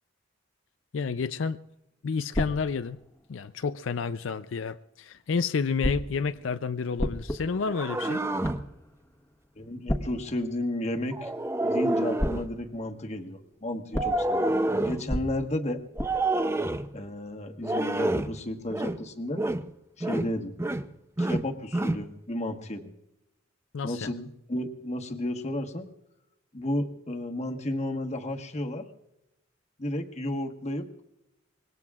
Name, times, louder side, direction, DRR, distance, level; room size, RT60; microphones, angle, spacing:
voice 1, 0.9-1.6 2.0-3.0 3.3-8.2 23.7-24.1, left 5 dB, 80° left, 0.5 m, -30 dB
sound 1, 2.3-4.3 5.8-11.8 12.2-17.7, equal, 15° left, 1.2 m, -37 dB
sound 2, 7.4-8.7 11.1-12.5 13.9-15.1 16.0-16.9 17.6-18.4 18.7-19.0 19.4-19.7 20.0-20.9 21.2-22.1, right 2 dB, 15° right, 0.6 m, -28 dB
voice 2, 9.6-11.3 11.6-14.6 14.8-15.8 16.9-19.4 20.0-20.5 21.2-22.9 23.8-25.9 26.5-28.8 29.8-30.9, left 1 dB, 35° left, 1.3 m, -33 dB
25.5 x 21.5 x 2.4 m
head